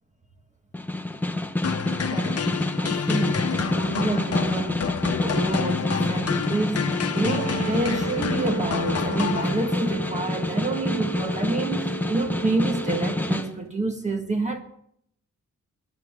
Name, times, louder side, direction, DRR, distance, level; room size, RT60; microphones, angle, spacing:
Snare drum, 0.7-13.5, left 1 dB, 5° left, 1.0 m, -28 dB
sound 1, 1.6-10.0, left 7 dB, 55° left, 1.1 m, -29 dB
voice 1, 2.1-2.4 2.8-4.9 5.2-14.6, right 2 dB, 25° right, 1.7 m, -28 dB
Wind instrument woodwind instrument, 7.1-13.4, right 3 dB, 60° right, 2.3 m, -35 dB
21.0 x 12.0 x 3.7 m
wide cardioid pair, 120°, 30 cm